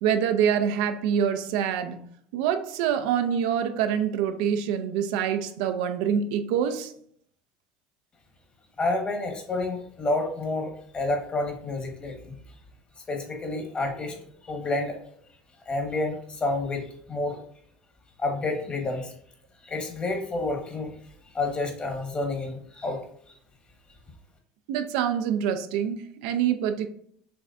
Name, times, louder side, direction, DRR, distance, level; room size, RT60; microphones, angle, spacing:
voice 1, 0.0-2.0 2.3-6.9 24.7-26.9, right 8 dB, 80° right, 0.5 m, -25 dB
voice 2, 8.8-12.3 13.1-14.2 14.4-15.0 15.7-17.4 18.2-19.1 19.6-20.9 21.3-23.0, left 2 dB, 30° left, 1.4 m, -29 dB
5.9 x 3.2 x 2.6 m
supercardioid pair, 95°, 4 cm